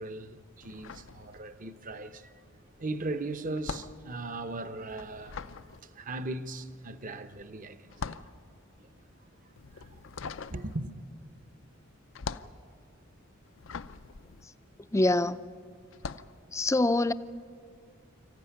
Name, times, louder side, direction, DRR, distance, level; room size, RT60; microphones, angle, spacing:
voice 1, 0.0-2.4 2.8-8.4 8.8-8.9 9.2-9.3 9.7-9.9 10.5-11.0, right 2 dB, 40° right, 0.9 m, -38 dB
sound 1, 0.6-1.9 2.1-15.3 15.9-16.4, left 5 dB, 70° left, 0.6 m, -43 dB
voice 2, 14.9-15.4 16.5-17.1, left 2 dB, 15° left, 0.5 m, -24 dB
26.0 x 14.5 x 9.9 m
head